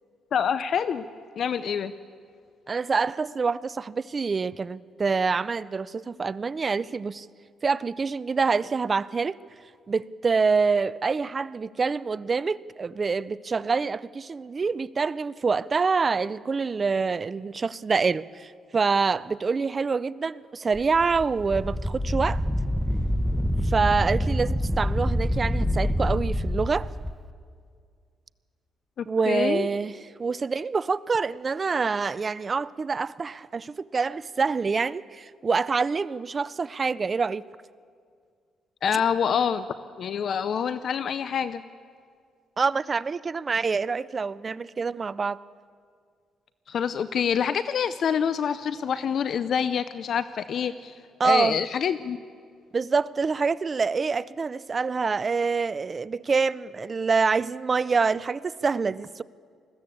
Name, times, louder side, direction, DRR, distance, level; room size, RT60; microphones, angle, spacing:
voice 1, 0.3-1.0 1.4-1.9 29.0-29.7 38.8-39.7 40.0-41.6 46.7-51.0 51.2-52.2, left 7 dB, 60° left, 0.5 m, -26 dB
voice 2, 2.7-7.3 7.6-9.4 9.9-22.4 23.6-26.9 29.1-37.4 42.6-45.4 51.2-51.6 52.7-59.2, right 4 dB, 35° right, 0.4 m, -26 dB
Wind, 20.7-27.1, equal, ahead, 0.8 m, -26 dB
20.5 x 15.0 x 8.5 m
cardioid pair, 90°, 0 cm